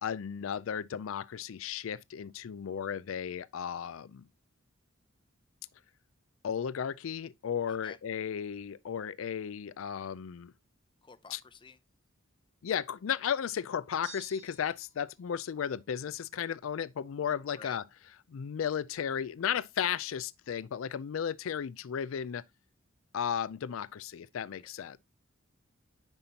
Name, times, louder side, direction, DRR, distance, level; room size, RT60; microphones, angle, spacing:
voice 1, 0.0-4.3 6.4-10.5 11.3-11.4 12.6-17.8 18.3-22.4 23.1-25.0, left 8 dB, 85° left, 0.4 m, -34 dB
voice 2, 11.0-11.8 17.5-17.8, left 4 dB, 25° left, 0.6 m, -50 dB
sound 1, 14.0-15.0, right 3 dB, 65° right, 2.5 m, -50 dB
8.9 x 5.8 x 2.8 m
head